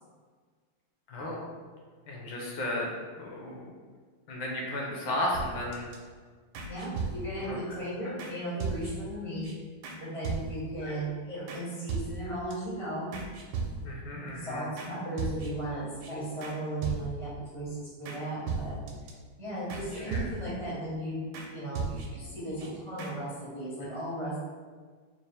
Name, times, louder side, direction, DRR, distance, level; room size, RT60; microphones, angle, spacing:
voice 1, 1.1-1.4 2.1-2.9 3.2-3.7 4.3-5.9 7.4-7.6 10.8-10.9 13.8-14.7 19.8-20.2, left 1 dB, 70° left, -3 dB, 1.4 m, -34 dB
sound 1, 5.3-6.0 6.5-7.5 8.2-8.3 8.6-9.1 9.4-9.5 9.8-10.0 10.2-10.8 11.5-11.6 11.9-12.5 13.1-14.1 14.8-14.9 15.2-15.7 16.0-16.1 16.4-16.6 16.8-17.4 18.1-18.2 18.5-19.1 19.7-20.6 21.3-21.5 21.8-22.3 22.6-22.7 23.0-23.1, right 4 dB, 75° right, 1.2 m, -36 dB
voice 2, 6.6-9.5 10.0-13.1 14.1-18.7 19.4-21.2 21.5-24.4, right 1 dB, 50° right, -9 dB, 0.3 m, -36 dB
4.4 x 2.4 x 3.3 m, 1.5 s
omnidirectional pair, 2.4 m